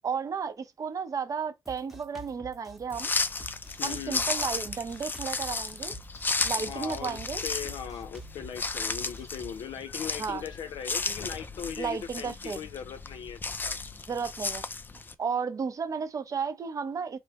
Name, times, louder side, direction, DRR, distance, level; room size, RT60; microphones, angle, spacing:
voice 1, 0.0-3.1 3.8-6.0 6.4-7.4 10.2-10.4 11.8-12.6 14.1-14.6 15.2-17.2, right 6 dB, 45° right, 0.6 m, -33 dB
Drum kit, 1.7-9.6, right 2 dB, ahead, 0.7 m, -48 dB
sound 1, 2.9-15.1, left 4 dB, 25° left, 0.4 m, -34 dB
voice 2, 3.8-4.2 6.6-13.8, left 8 dB, 75° left, 0.6 m, -39 dB
3.1 x 2.0 x 2.9 m
cardioid pair, 90°, 8 cm